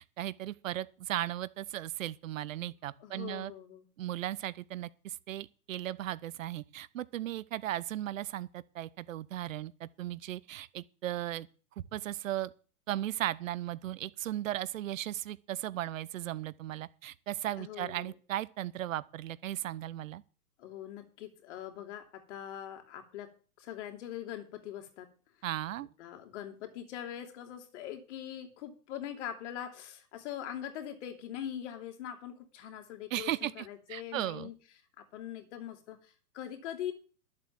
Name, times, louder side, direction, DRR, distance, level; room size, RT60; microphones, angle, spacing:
voice 1, 0.2-3.5 4.0-11.5 11.9-12.5 12.9-20.2 25.4-25.9 33.1-34.5, right 13 dB, 60° right, 0.9 m, -36 dB
voice 2, 3.0-3.9 17.6-18.2 20.6-25.1 26.0-34.6 35.0-36.9, left 10 dB, 50° left, 3.1 m, -42 dB
11.5 x 7.6 x 7.6 m
hypercardioid pair, 135°, 45 cm